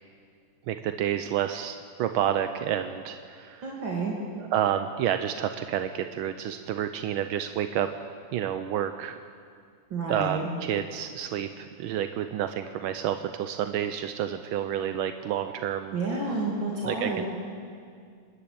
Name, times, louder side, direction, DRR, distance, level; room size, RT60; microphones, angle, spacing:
voice 1, 0.7-3.7 4.4-7.9 8.3-9.2 10.1-16.0 16.8-17.2, right 10 dB, 85° right, 9 dB, 1.5 m, -29 dB
voice 2, 3.6-4.1 9.9-10.5 15.9-17.3, right 3 dB, 70° right, -3 dB, 3.1 m, -30 dB
26.0 x 12.0 x 8.8 m, 2.2 s
omnidirectional pair, 2.2 m